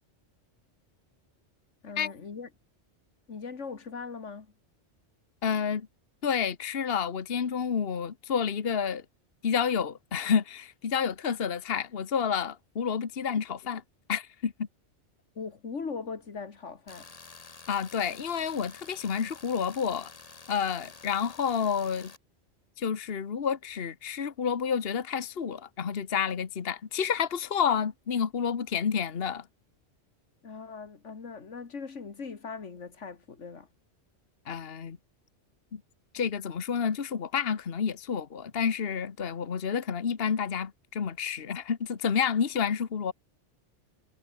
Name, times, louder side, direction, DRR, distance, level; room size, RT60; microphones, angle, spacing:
voice 1, 1.8-2.5 3.3-4.5 15.4-17.1 30.4-33.7, left 5 dB, 85° left, 2.2 m, -40 dB
voice 2, 5.4-5.9 6.2-9.0 9.4-13.8 14.1-14.7 17.7-20.1 20.5-22.1 22.8-29.5 34.5-35.0 35.7-35.8 36.1-43.1, left 7 dB, 55° left, 1.4 m, -29 dB
Tools, 16.9-22.2, left 4 dB, 30° left, 1.4 m, -50 dB
omnidirectional pair, 1.2 m